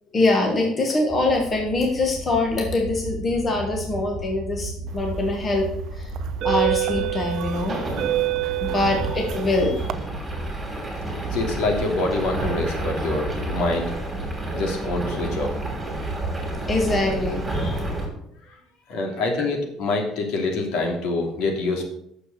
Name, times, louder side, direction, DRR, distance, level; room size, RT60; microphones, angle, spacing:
voice 1, 0.1-5.7 5.9-6.1 6.4-7.8 8.6-9.9 16.5-17.8, left 2 dB, 20° left, 1 dB, 1.4 m, -23 dB
sound 1, 1.1-18.1, right 2 dB, 10° right, 3.0 m, -30 dB
sound 2, 5.1-5.4 6.1-9.9, right 16 dB, 45° right, 0.6 m, -27 dB
voice 2, 11.3-13.9 14.5-15.6 18.9-21.8, left 2 dB, 65° left, 1 dB, 3.0 m, -26 dB
9.8 x 6.9 x 6.8 m, 0.72 s
cardioid pair, 180°, 0 cm